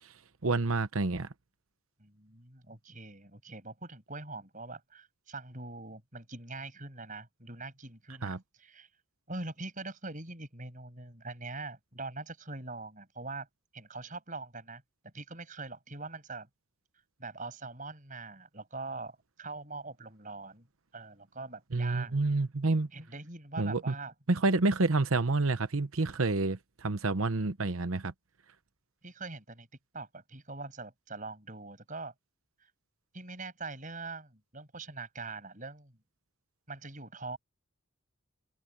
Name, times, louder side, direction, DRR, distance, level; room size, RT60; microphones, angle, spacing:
voice 1, 0.4-1.3 8.2-8.4 21.7-22.9 23.6-23.9 24.3-28.1, right 3 dB, 75° right, 1.0 m, -28 dB
voice 2, 2.0-8.9 9.3-13.5 13.7-16.5 17.2-20.7 20.9-22.2 22.9-24.1 29.0-29.7 29.9-32.1 32.6-32.7 33.1-36.0 36.7-37.4, right 3 dB, 35° right, 6.6 m, -43 dB
head